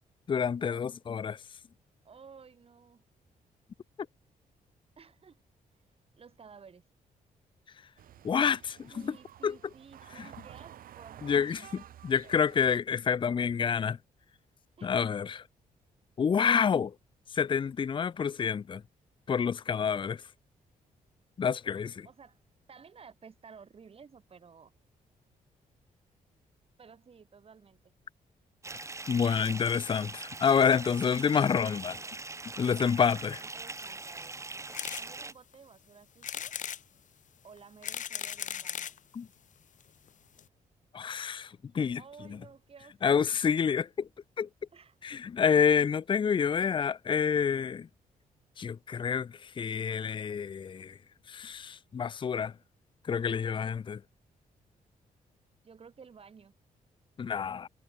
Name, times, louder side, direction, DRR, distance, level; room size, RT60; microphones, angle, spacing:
voice 1, 0.3-1.4 8.2-9.2 9.4-9.6 10.2-10.3 11.2-14.0 14.8-15.4 16.2-16.9 17.3-18.8 19.3-20.2 21.4-22.1 29.1-32.0 32.6-33.3 39.2-39.3 40.9-42.0 43.0-44.1 44.4-44.5 45.0-47.9 48.6-51.0 51.3-52.5 53.1-54.0 57.2-57.7, left 7 dB, 35° left, 0.6 m, -28 dB
voice 2, 2.0-3.0 5.0-5.4 6.2-6.8 8.9-12.0 14.8-15.1 22.0-22.4 22.7-24.7 26.8-27.8 32.6-34.4 34.9-36.5 37.4-39.0 42.0-43.4 44.7-45.0 55.6-56.5, right 6 dB, 40° right, 4.3 m, -54 dB
sound 1, 8.0-12.8, right 11 dB, 80° right, 2.4 m, -51 dB
Bathtub (filling or washing) / Fill (with liquid), 28.6-35.3, right 3 dB, 20° right, 2.1 m, -42 dB
sound 2, 34.7-35.1 35.5-35.6 36.2-36.8 37.6-39.0 39.8-39.9 40.1-40.2 40.4-40.5, left 9 dB, 60° left, 2.3 m, -37 dB
cardioid pair, 110°, 15 cm